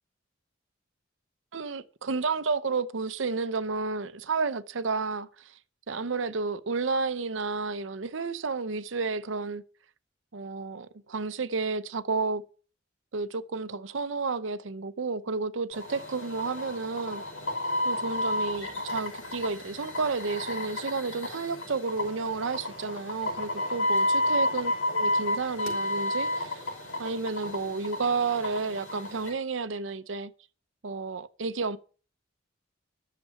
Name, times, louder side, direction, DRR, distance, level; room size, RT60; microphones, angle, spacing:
voice 1, 1.5-5.6 5.9-9.6 10.3-12.4 13.1-17.2 17.8-26.6 27.0-30.3 30.8-31.8, right 4 dB, 75° right, 0.7 m, -31 dB
sound 1, 15.7-29.3, left 1 dB, 85° left, 5.2 m, -31 dB
11.0 x 6.8 x 6.9 m
head